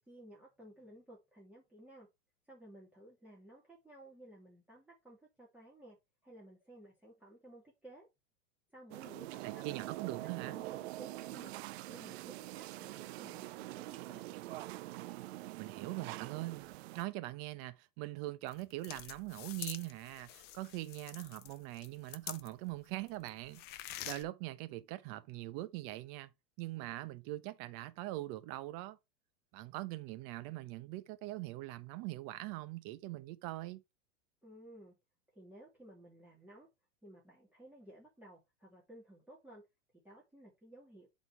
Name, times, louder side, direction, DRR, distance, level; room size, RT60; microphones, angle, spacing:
voice 1, 0.0-2.1 2.5-6.0 6.2-8.1 8.7-9.6 10.2-11.6 11.9-14.4 34.4-34.9 35.3-36.7 37.0-39.6 40.0-41.1, right 1 dB, 5° right, 2.7 m, -56 dB
sound 1, 8.9-17.0, right 17 dB, 55° right, 0.5 m, -45 dB
voice 2, 9.4-10.6 15.5-16.7 16.9-26.3 26.6-29.0 29.5-33.8, right 17 dB, 40° right, 0.9 m, -42 dB
sound 2, 18.5-22.8 23.1-24.2, left 13 dB, 25° left, 0.6 m, -47 dB
7.8 x 4.1 x 4.6 m
supercardioid pair, 145°, 38 cm